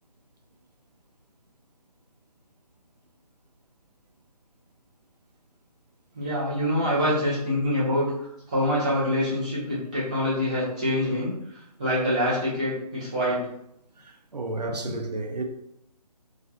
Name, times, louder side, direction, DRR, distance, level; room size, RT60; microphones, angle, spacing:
voice 1, 6.1-11.4 11.8-13.4 14.9-15.0, left 1 dB, 10° right, 0.5 m, -25 dB
voice 2, 14.0-15.4, right 2 dB, 80° right, 0.4 m, -32 dB
2.2 x 2.2 x 2.6 m
figure-of-eight pair, 150°, 20 cm